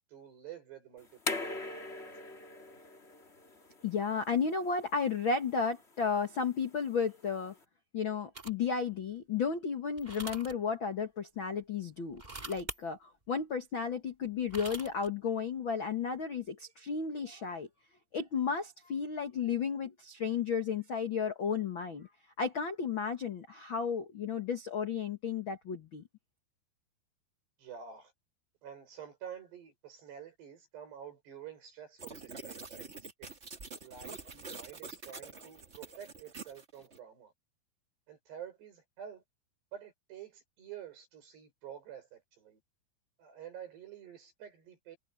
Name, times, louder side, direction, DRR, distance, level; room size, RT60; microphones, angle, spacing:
voice 1, 0.0-2.1 27.6-28.1 28.6-33.4 33.8-37.3 38.1-39.2 39.7-42.6 43.2-45.0, right 9 dB, 75° right, 8.6 m, -49 dB
sound 1, 1.0-7.6, left 2 dB, 25° left, 1.6 m, -43 dB
voice 2, 3.8-7.5 7.9-12.2 12.5-17.7 18.1-22.1 22.4-26.0, left 6 dB, 60° left, 1.2 m, -33 dB
sound 2, 8.3-8.7 10.0-10.5 12.1-12.8 14.2-15.1, right 2 dB, 15° right, 2.2 m, -43 dB
sound 3, 32.0-37.0, right 4 dB, 45° right, 0.9 m, -46 dB
omnidirectional pair, 4.8 m